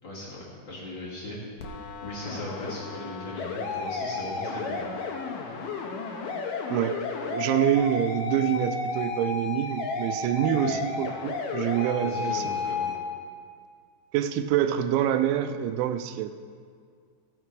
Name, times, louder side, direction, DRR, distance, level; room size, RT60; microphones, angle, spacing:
voice 1, 0.0-1.4 2.0-4.8 10.6-10.7 12.0-12.9, left 1 dB, 30° left, -6 dB, 2.4 m, -38 dB
sound 1, 1.6-13.0, left 4 dB, 75° left, 2.1 m, -32 dB
voice 2, 6.7-7.0 7.3-12.4 14.1-16.3, right 11 dB, 90° right, 9 dB, 3.0 m, -26 dB
16.5 x 6.6 x 4.6 m, 2.1 s
omnidirectional pair, 5.3 m